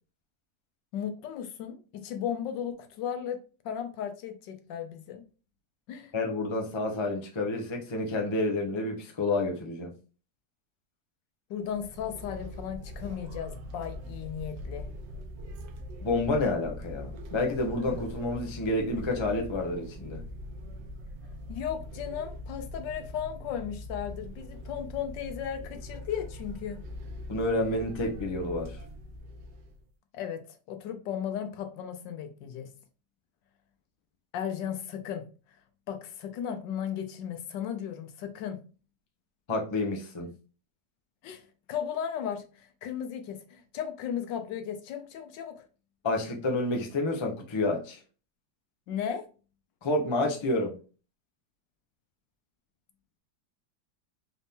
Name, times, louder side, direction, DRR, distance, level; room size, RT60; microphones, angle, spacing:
voice 1, 0.9-3.4 3.6-5.2 5.9-6.1 11.5-14.9 21.5-26.8 30.1-32.7 34.3-35.3 35.9-38.6 41.2-45.6 48.9-49.2, left 8 dB, 90° left, 1.4 m, -35 dB
voice 2, 6.1-9.9 16.0-20.2 27.3-28.8 39.5-40.3 46.0-48.0 49.8-50.8, left 2 dB, 45° left, 0.3 m, -29 dB
sound 1, 11.6-29.8, equal, 75° right, 0.6 m, -42 dB
4.0 x 2.7 x 3.5 m
omnidirectional pair, 1.9 m